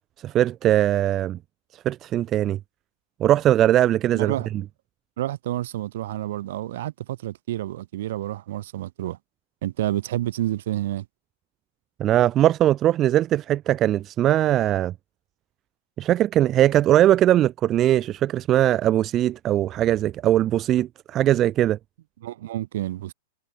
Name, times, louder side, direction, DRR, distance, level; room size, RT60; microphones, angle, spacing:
voice 1, 0.2-1.4 1.9-2.6 3.2-4.3 12.0-14.9 16.0-21.8, right 12 dB, 35° right, 0.5 m, -20 dB
voice 2, 4.1-4.5 5.2-9.2 9.6-11.0 22.2-23.1, right 14 dB, 65° right, 4.7 m, -29 dB
hypercardioid pair, 110°, 0 cm